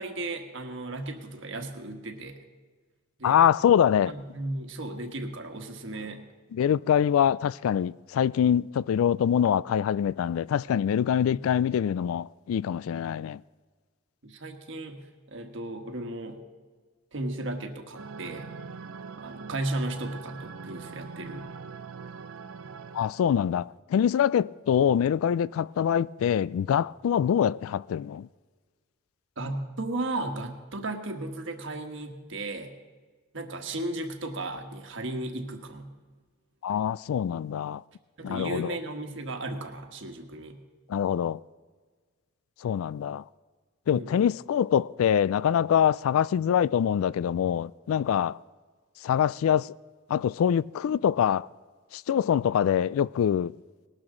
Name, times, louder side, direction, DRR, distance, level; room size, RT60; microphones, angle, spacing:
voice 1, 0.0-2.4 3.2-3.4 4.1-6.3 11.3-11.4 14.2-16.4 17.1-18.5 19.2-21.5 29.4-32.7 33.3-35.9 38.2-40.6 43.9-44.2, right 2 dB, 65° right, 1.4 m, -35 dB
voice 2, 3.2-4.1 6.5-13.4 22.9-28.3 36.6-37.8 38.2-38.8 40.9-41.4 42.6-43.2 43.9-48.4 49.0-49.7 50.1-51.5 51.9-53.6, left 9 dB, 90° left, 0.3 m, -24 dB
sound 1, 18.0-23.4, right 5 dB, 90° right, 0.6 m, -42 dB
19.5 x 12.0 x 3.8 m
head